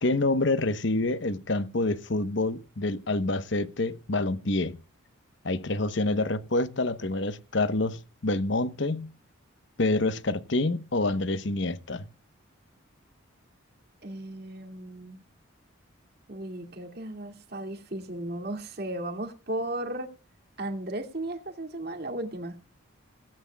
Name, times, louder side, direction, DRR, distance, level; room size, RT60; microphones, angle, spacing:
voice 1, 0.0-4.8 5.4-9.1 9.8-12.1, left 2 dB, 60° left, 1.0 m, -27 dB
voice 2, 14.0-15.2 16.3-20.1 20.6-22.6, right 1 dB, 50° right, 2.5 m, -35 dB
17.0 x 17.0 x 2.3 m
head